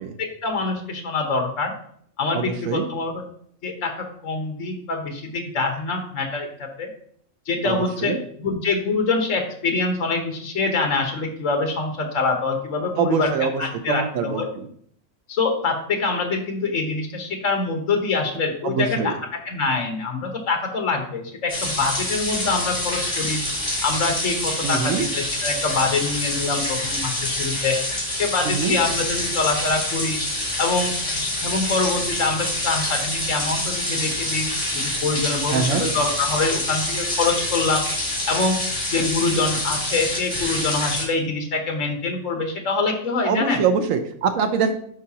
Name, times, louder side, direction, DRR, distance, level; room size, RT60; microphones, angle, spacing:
voice 1, 0.2-1.7 2.2-3.2 3.6-6.9 7.5-14.5 15.3-19.1 19.4-23.4 23.8-27.8 28.2-30.2 30.6-34.5 34.7-37.8 38.3-38.6 38.9-43.6, left 3 dB, 75° left, 3 dB, 1.5 m, -25 dB
voice 2, 2.3-2.9 7.6-8.2 13.0-13.6 13.9-14.7 18.6-19.1 24.6-25.1 28.4-28.8 35.5-35.9 43.3-44.7, right 6 dB, 85° right, 6 dB, 1.1 m, -24 dB
sound 1, 21.5-41.0, left 1 dB, 40° left, 3.4 m, -26 dB
10.5 x 4.8 x 2.9 m, 0.64 s
omnidirectional pair, 1.3 m